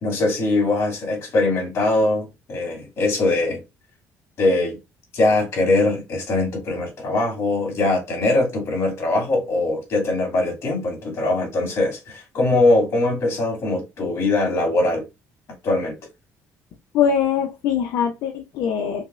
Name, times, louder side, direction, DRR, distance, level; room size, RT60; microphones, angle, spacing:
voice 1, 0.0-3.6 4.4-4.8 5.1-15.0 15.6-16.0, left 2 dB, 50° left, 2.2 m, -21 dB
voice 2, 16.9-19.0, left 8 dB, 75° left, 0.5 m, -22 dB
5.1 x 2.0 x 2.4 m
cardioid pair, 140°, 6 cm